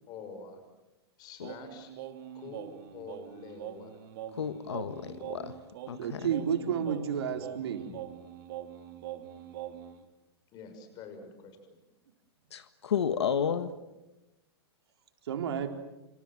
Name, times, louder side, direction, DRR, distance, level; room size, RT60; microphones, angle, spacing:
voice 1, 0.1-0.6 1.2-1.9 2.3-4.0 10.5-11.8, left 4 dB, 30° left, 7 dB, 6.2 m, -46 dB
Singing, 1.4-10.0, right 11 dB, 55° right, 3.0 m, -44 dB
voice 2, 4.3-5.6 5.9-6.2 12.5-13.7, left 7 dB, 90° left, 10 dB, 1.6 m, -32 dB
voice 3, 6.0-7.9 15.2-15.7, right 8 dB, 75° right, 5 dB, 4.1 m, -31 dB
28.5 x 26.0 x 7.6 m, 0.99 s
hypercardioid pair, 150°, 14 cm